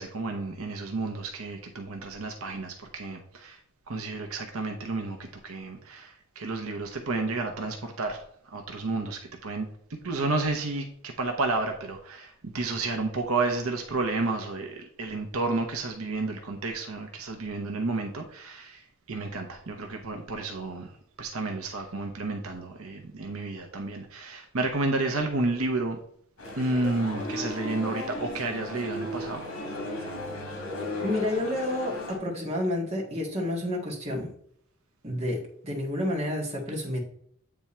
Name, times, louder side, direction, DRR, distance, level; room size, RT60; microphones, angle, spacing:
voice 1, 0.0-3.6 3.9-20.9 21.2-26.0 26.6-29.4, right 3 dB, 80° right, 4 dB, 0.8 m, -31 dB
Male speech man speaking, 26.4-32.2, left 2 dB, 65° left, 2.1 m, -35 dB
voice 2, 31.0-34.3 35.0-37.0, left 1 dB, 30° right, -3 dB, 1.8 m, -30 dB
8.7 x 3.5 x 4.3 m, 0.64 s
head